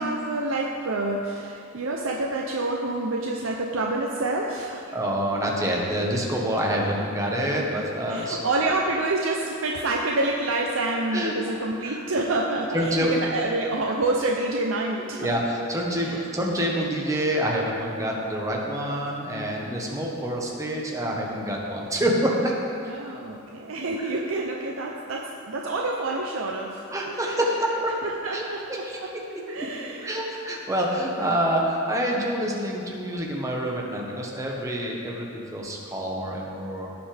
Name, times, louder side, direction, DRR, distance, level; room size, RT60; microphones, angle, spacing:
voice 1, 0.0-5.0 5.8-5.9 7.6-7.7 8.1-15.3 16.0-16.2 22.9-27.4 28.0-29.1 29.5-30.2 31.2-31.5, right 2 dB, 80° right, 0 dB, 0.7 m, -28 dB
voice 2, 4.9-8.4 11.1-11.3 11.8-12.0 12.7-13.1 15.2-22.5 24.0-24.1 26.9-27.9 28.3-29.0 30.0-36.9, equal, 15° right, -2 dB, 1.3 m, -27 dB
16.0 x 5.9 x 3.5 m, 2.5 s
head